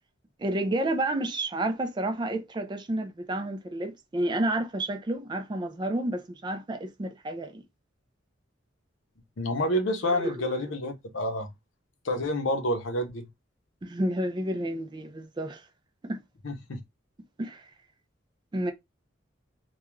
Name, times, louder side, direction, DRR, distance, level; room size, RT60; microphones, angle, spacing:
voice 1, 0.4-7.6 10.1-10.3 13.8-15.6 16.0-16.2 17.4-17.6 18.5-18.7, right 1 dB, 20° right, 0.3 m, -30 dB
voice 2, 9.4-11.5 12.0-13.3 16.4-16.8, left 1 dB, 75° left, 0.7 m, -28 dB
2.3 x 2.3 x 2.9 m
head